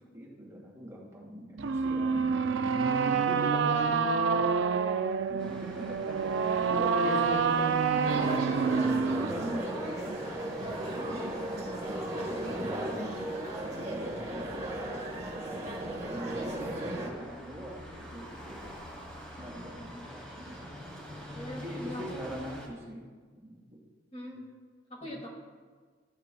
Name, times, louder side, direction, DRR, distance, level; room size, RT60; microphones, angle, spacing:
voice 1, 0.1-5.0 5.3-7.8 8.1-8.3 9.2-11.7 12.3-13.4 13.6-15.1 16.0-18.7 19.4-20.6 21.6-23.0 23.4-23.8 25.0-25.2, equal, 15° right, -4 dB, 1.8 m, -42 dB
sound 1, 1.6-9.6, right 5 dB, 80° right, 0.4 m, -27 dB
sound 2, 5.4-22.7, equal, 5° left, 2.2 m, -47 dB
sound 3, 8.0-17.1, right 1 dB, 40° right, 2.4 m, -36 dB
voice 2, 12.9-13.3 16.3-16.6 21.3-22.0 24.1-24.5 24.9-25.3, left 1 dB, 35° left, -2 dB, 2.2 m, -42 dB
13.5 x 10.5 x 2.3 m, 1.5 s
head